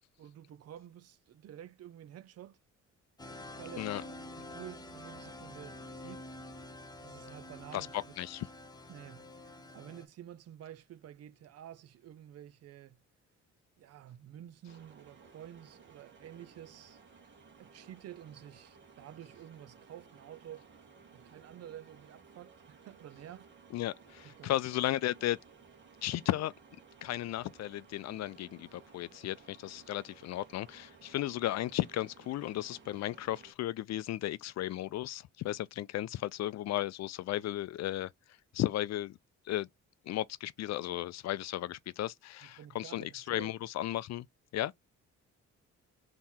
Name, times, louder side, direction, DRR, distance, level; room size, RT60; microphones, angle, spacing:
voice 1, 0.2-2.6 3.6-3.9 4.3-6.3 7.0-7.9 8.9-13.0 13.8-17.0 17.6-20.6 21.1-23.5 24.2-24.5 42.6-43.5, right 11 dB, 55° right, 0.5 m, -50 dB
sound 1, 3.2-10.0, left 1 dB, 15° left, 0.9 m, -47 dB
voice 2, 7.7-8.5 23.7-25.4 26.0-26.5 27.0-38.1 38.5-39.2 39.4-39.7 40.0-44.3 44.5-44.7, left 14 dB, 60° left, 0.4 m, -35 dB
sound 2, 14.7-33.5, right 5 dB, 40° right, 1.6 m, -58 dB
3.6 x 3.0 x 4.3 m
cardioid pair, 125°, 30 cm